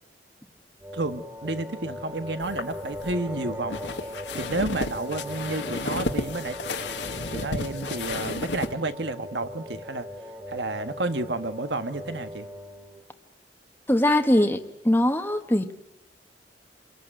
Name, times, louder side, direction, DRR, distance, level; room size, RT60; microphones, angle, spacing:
sound 1, 0.8-13.0, left 1 dB, 20° right, 3.0 m, -39 dB
voice 1, 0.9-3.8 4.3-6.6 7.3-10.1 10.5-12.5, right 2 dB, 75° right, 10 dB, 1.6 m, -31 dB
sound 2, 2.4-8.7, left 3 dB, 85° left, 2.0 m, -33 dB
voice 2, 13.9-15.7, left 1 dB, 10° left, 6 dB, 1.4 m, -22 dB
27.5 x 22.5 x 9.1 m, 0.81 s
head